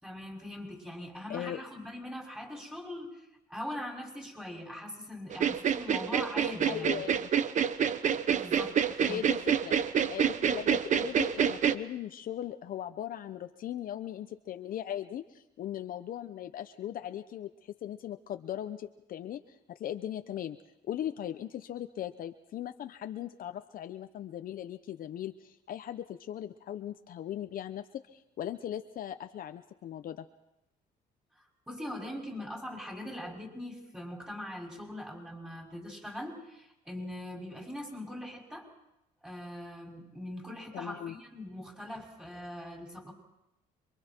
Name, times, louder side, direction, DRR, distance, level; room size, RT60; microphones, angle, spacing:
voice 1, 0.0-7.0 8.3-9.2 31.4-38.7 39.2-43.1, left 1 dB, 5° right, 0 dB, 5.9 m, -42 dB
voice 2, 1.3-1.6 6.6-7.3 9.1-19.4 19.7-20.6 20.9-30.3 40.7-41.1, left 11 dB, 55° left, 8 dB, 0.9 m, -39 dB
sound 1, 5.3-11.7, right 8 dB, 45° right, 0.9 m, -27 dB
27.0 x 23.5 x 4.5 m, 0.88 s
cardioid pair, 110°, 17 cm